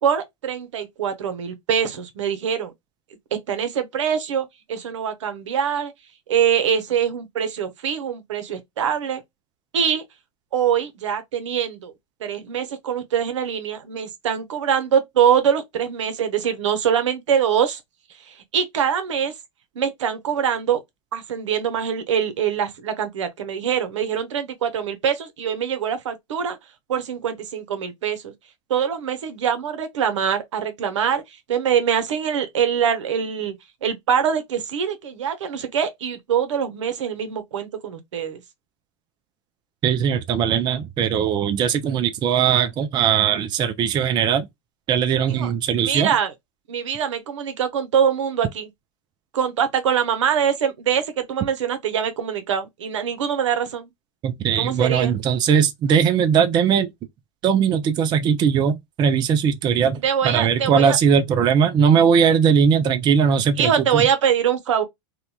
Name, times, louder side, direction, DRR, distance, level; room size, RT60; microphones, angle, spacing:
voice 1, 0.0-2.7 3.3-5.9 6.3-9.2 9.7-10.0 10.5-11.9 12.2-17.8 18.3-19.3 19.8-20.8 21.1-26.6 26.9-28.3 28.7-31.2 31.5-33.5 33.8-38.4 45.3-45.5 45.8-46.3 46.7-48.7 49.3-53.9 54.6-55.2 60.0-61.0 63.6-64.8, right 8 dB, 85° right, 0.8 m, -23 dB
voice 2, 39.8-44.5 44.9-46.1 54.2-56.9 57.4-64.0, right 7 dB, 30° right, 0.4 m, -19 dB
2.8 x 2.2 x 2.2 m
hypercardioid pair, 120°, 15 cm